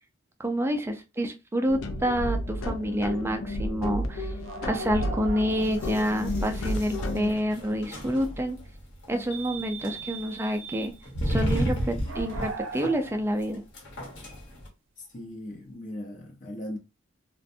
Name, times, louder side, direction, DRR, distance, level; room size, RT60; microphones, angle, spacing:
voice 1, 0.4-4.3 4.6-8.6 9.1-10.9 11.3-13.6, equal, 10° right, 0.4 m, -28 dB
sound 1, 1.7-7.3, left 1 dB, 80° left, 0.5 m, -32 dB
sound 2, 4.4-6.2 6.5-6.6 9.1-9.8 10.2-10.5 12.1-13.5, right 4 dB, 85° right, 0.5 m, -39 dB
sound 3, 5.4-14.7, right 1 dB, 60° left, 0.9 m, -34 dB
voice 2, 15.0-16.8, left 1 dB, 40° left, 0.6 m, -38 dB
2.5 x 2.1 x 2.6 m
head